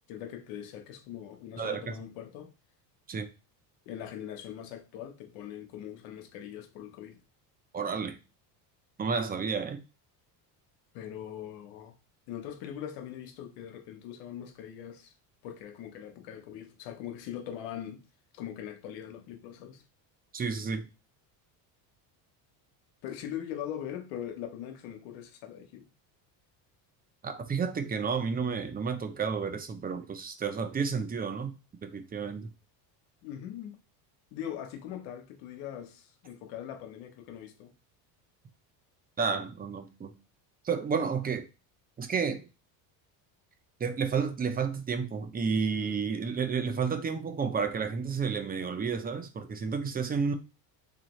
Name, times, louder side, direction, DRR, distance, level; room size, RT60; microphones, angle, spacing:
voice 1, 0.1-2.5 3.9-7.2 10.9-12.0 12.3-15.1 15.4-18.0 18.3-19.8 23.0-25.9 33.2-33.8 34.3-37.7, left 10 dB, 75° left, 1.0 m, -41 dB
voice 2, 7.7-8.2 9.0-9.8 20.3-20.9 27.2-31.5 31.8-32.5 39.2-40.1 40.6-41.4 42.0-42.5 43.8-50.3, right 5 dB, 20° right, 0.5 m, -31 dB
3.6 x 3.3 x 3.1 m
supercardioid pair, 100°, 46 cm